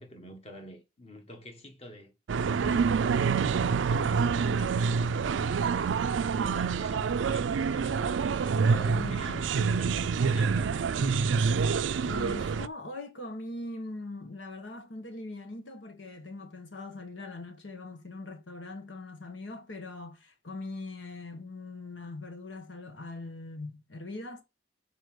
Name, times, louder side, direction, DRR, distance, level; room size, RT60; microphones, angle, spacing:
voice 1, 0.0-2.1 4.2-5.1 5.7-8.2 8.6-11.1, equal, 35° left, 1.5 m, -48 dB
sound 1, 2.3-12.7, right 5 dB, 90° right, 0.4 m, -27 dB
voice 2, 2.5-3.0 8.7-9.5 12.0-24.4, left 2 dB, 90° left, 1.3 m, -41 dB
6.5 x 4.4 x 6.3 m
head